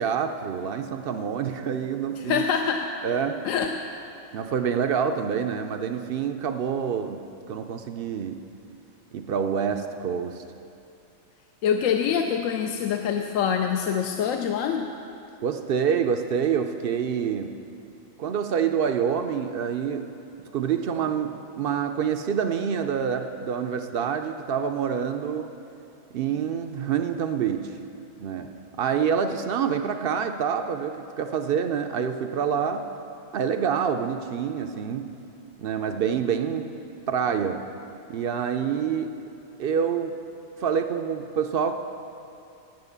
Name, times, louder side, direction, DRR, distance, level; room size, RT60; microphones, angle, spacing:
voice 1, 0.0-2.4 3.0-3.5 4.3-8.4 9.1-10.4 15.4-17.6 18.2-20.1 20.5-25.5 26.1-27.7 28.2-32.9 33.3-35.1 35.6-36.7 37.1-37.6 38.1-39.2 39.6-40.2 40.6-41.7, right 7 dB, 65° right, 7 dB, 0.6 m, -27 dB
voice 2, 2.2-2.9 3.4-3.7 11.6-14.9, left 7 dB, 75° left, 4 dB, 0.9 m, -25 dB
9.6 x 9.0 x 6.7 m, 2.6 s
omnidirectional pair, 1.4 m